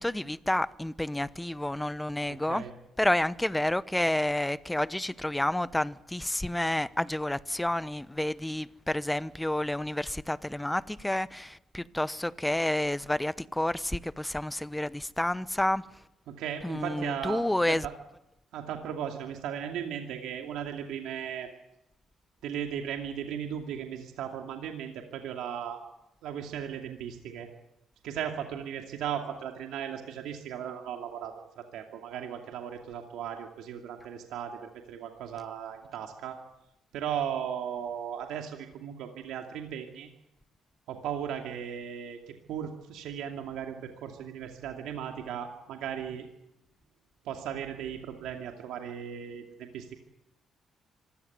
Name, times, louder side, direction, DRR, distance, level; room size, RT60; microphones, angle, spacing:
voice 1, 0.0-2.6 3.0-15.8 16.6-17.9, left 1 dB, 10° left, 0.8 m, -30 dB
voice 2, 2.3-2.7 16.3-17.4 17.7-17.9 18.5-21.5 22.4-25.8 26.2-27.5 28.0-36.4 36.9-40.1 40.9-46.2 47.2-50.0, right 9 dB, 90° right, 2.5 m, -37 dB
25.5 x 15.5 x 9.4 m
cardioid pair, 90°, 0 cm